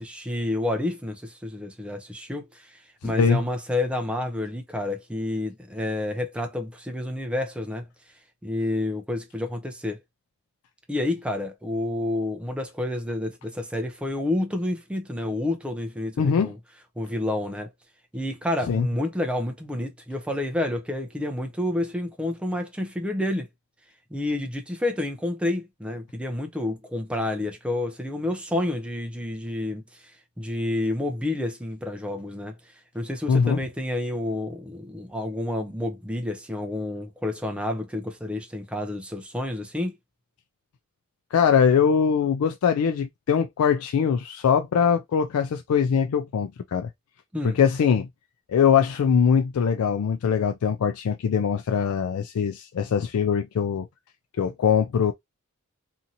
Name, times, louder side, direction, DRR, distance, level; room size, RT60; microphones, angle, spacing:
voice 1, 0.0-7.8 8.4-10.0 10.9-16.6 17.0-17.7 18.1-23.5 24.1-30.1 30.4-32.5 32.9-40.0 47.3-47.6, left 1 dB, 5° right, 0.5 m, -29 dB
voice 2, 3.0-3.4 16.2-16.5 18.7-18.9 33.3-33.6 41.3-46.9 47.4-48.1 48.5-53.9 54.4-55.1, left 7 dB, 75° left, 0.3 m, -22 dB
2.8 x 2.6 x 2.6 m
head